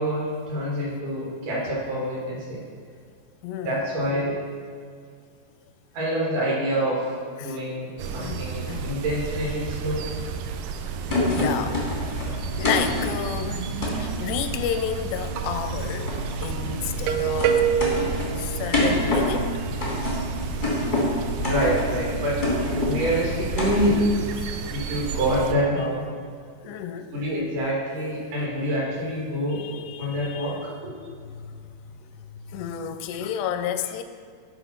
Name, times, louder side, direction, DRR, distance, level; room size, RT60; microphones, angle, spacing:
voice 1, 0.0-2.6 3.6-4.3 5.9-7.1 7.4-10.1 21.4-22.4 22.8-23.9 24.7-26.1 27.1-29.6 30.0-30.6 30.8-31.0, equal, 55° right, -5 dB, 3.2 m, -26 dB
voice 2, 3.4-3.8 7.4-7.6 8.2-8.4 8.7-8.9 11.2-11.8 12.2-13.7 14.0-17.6 18.4-19.5 20.4-20.7 24.4-24.5 26.6-27.1 29.5-30.6 31.2-34.0, left 9 dB, 85° left, 9 dB, 2.7 m, -32 dB
sound 1, 8.0-25.5, right 7 dB, 85° right, 2.2 m, -30 dB
sound 2, 11.1-14.0 15.0-24.0, left 1 dB, 35° left, 0.7 m, -28 dB
11.5 x 4.0 x 5.7 m, 2.1 s
omnidirectional pair, 4.7 m